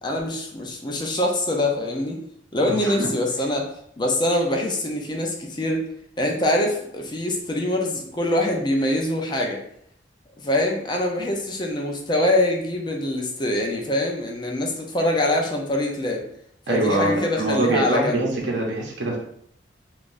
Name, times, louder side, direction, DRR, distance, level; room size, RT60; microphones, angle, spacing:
voice 1, 0.0-2.2 2.5-3.7 4.0-5.8 6.2-9.6 10.4-16.2 16.7-18.2, left 1 dB, 25° left, 1 dB, 0.5 m, -24 dB
voice 2, 2.7-3.1 16.7-19.2, right 1 dB, 80° right, -2 dB, 0.7 m, -24 dB
3.7 x 2.4 x 2.5 m, 0.68 s
head